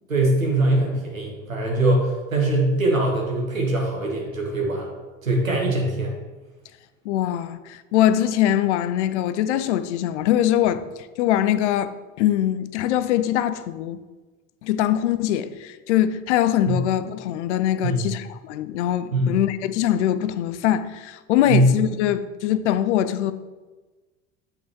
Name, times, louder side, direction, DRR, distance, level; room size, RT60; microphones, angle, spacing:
voice 1, 0.1-4.9 5.2-6.2 16.7-16.8 17.8-18.1 19.1-19.3 21.5-21.7, right 2 dB, 85° right, 1.2 m, -22 dB
voice 2, 7.1-10.8 11.2-14.0 14.6-23.3, left 11 dB, 60° left, 0.6 m, -22 dB
8.3 x 3.9 x 4.6 m
figure-of-eight pair, 65°, 40 cm